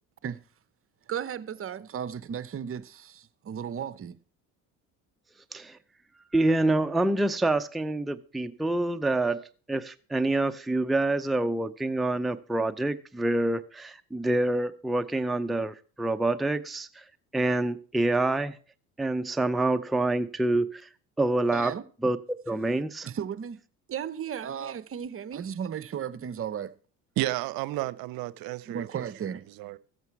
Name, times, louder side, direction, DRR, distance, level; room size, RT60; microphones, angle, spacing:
voice 1, 1.1-4.2 21.5-21.8 23.0-23.6 23.9-26.7 28.7-29.4, right 8 dB, 35° right, 0.8 m, -35 dB
voice 2, 6.3-17.0 17.3-18.6 19.0-20.9 21.2-21.7 22.0-23.1, right 2 dB, ahead, 0.5 m, -27 dB
voice 3, 27.2-28.9 29.6-29.8, right 17 dB, 65° right, 0.7 m, -31 dB
14.0 x 8.2 x 4.6 m
supercardioid pair, 85°, 38 cm